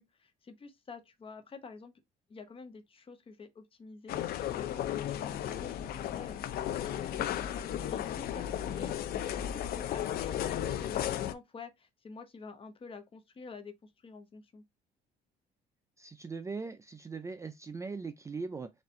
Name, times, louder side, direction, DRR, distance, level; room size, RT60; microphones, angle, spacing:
voice 1, 0.0-1.9 2.3-8.9 9.3-14.6, left 4 dB, 30° left, 0.9 m, -48 dB
sound 1, 4.1-11.3, left 11 dB, 65° left, 0.5 m, -34 dB
voice 2, 16.0-18.7, right 4 dB, 20° right, 0.4 m, -40 dB
4.2 x 2.5 x 3.6 m
cardioid pair, 110°, 17 cm